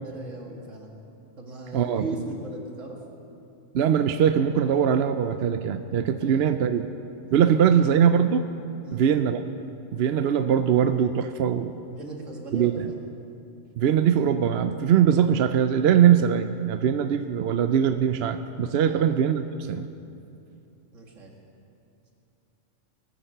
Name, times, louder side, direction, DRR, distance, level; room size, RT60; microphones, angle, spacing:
voice 1, 0.0-0.9 1.4-3.0 6.2-6.5 7.6-8.0 8.8-9.0 11.9-13.0 18.9-19.1 20.9-21.3, right 2 dB, 80° right, 0 dB, 2.4 m, -38 dB
voice 2, 1.7-2.0 3.7-6.9 7.3-8.4 8.9-9.4 9.9-11.8 12.5-12.7 13.8-19.9, right 8 dB, 65° right, 9 dB, 0.8 m, -21 dB
19.5 x 10.0 x 6.7 m, 2.7 s
omnidirectional pair, 1.3 m